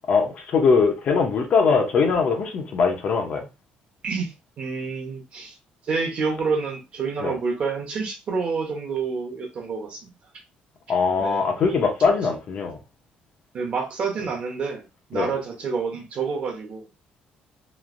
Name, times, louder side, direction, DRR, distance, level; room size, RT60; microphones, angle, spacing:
voice 1, 0.1-3.5 7.2-7.3 10.9-12.8 15.1-15.3, left 5 dB, 45° left, 0.7 m, -21 dB
voice 2, 4.0-5.6 5.9-10.1 11.2-11.5 13.5-14.8 15.1-16.8, right 5 dB, 40° right, 0.9 m, -28 dB
3.1 x 2.6 x 2.5 m
cardioid pair, 170°, 3 cm